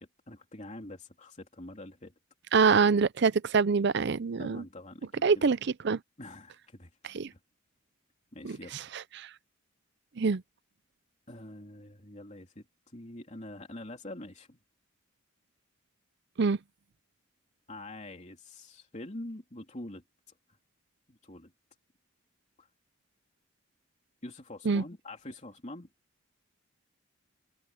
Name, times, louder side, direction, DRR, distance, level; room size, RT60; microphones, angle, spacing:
voice 1, 0.0-2.1 4.4-5.5 6.2-6.9 8.3-8.8 11.3-12.6 12.9-14.6 17.7-20.0 21.1-21.5 22.6-22.7 24.2-25.9, left 1 dB, 35° left, 3.1 m, -45 dB
voice 2, 2.5-4.6 5.2-6.0 7.0-7.3 8.4-9.3 10.2-10.4 16.4-16.6 24.6-24.8, right 5 dB, 60° right, 0.5 m, -26 dB
head